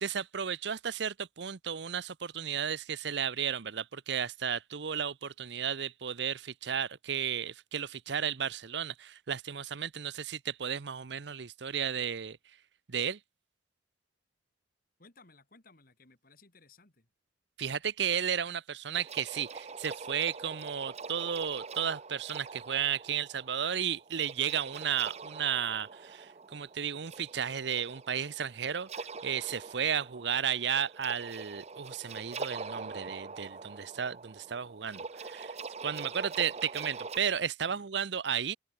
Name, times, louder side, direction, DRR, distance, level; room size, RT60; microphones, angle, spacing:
voice 1, 0.0-12.4 12.9-13.2 17.6-35.5 35.8-38.6, right 8 dB, 70° right, 0.7 m, -33 dB
voice 2, 15.0-17.1 37.7-37.8, left 3 dB, 50° left, 3.0 m, -60 dB
sound 1, 18.9-37.2, right 4 dB, 35° right, 0.8 m, -44 dB
head